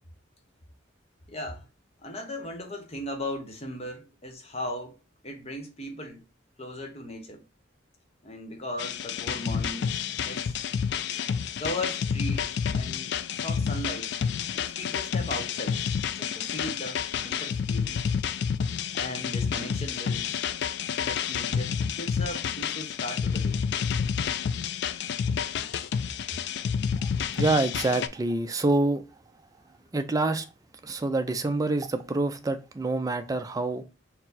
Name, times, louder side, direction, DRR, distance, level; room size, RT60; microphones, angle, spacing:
voice 1, 1.3-1.7 2.0-5.0 5.2-6.2 6.6-7.4 8.2-10.6 11.6-14.1 14.5-15.8 16.1-18.0 18.9-20.3 21.0-23.6, left 1 dB, 35° left, 0.9 m, -37 dB
sound 1, 8.8-28.1, left 7 dB, 60° left, 0.3 m, -29 dB
voice 2, 27.0-29.0 29.9-30.5 30.8-33.8, right 2 dB, 20° right, 0.4 m, -27 dB
4.4 x 2.0 x 4.0 m
head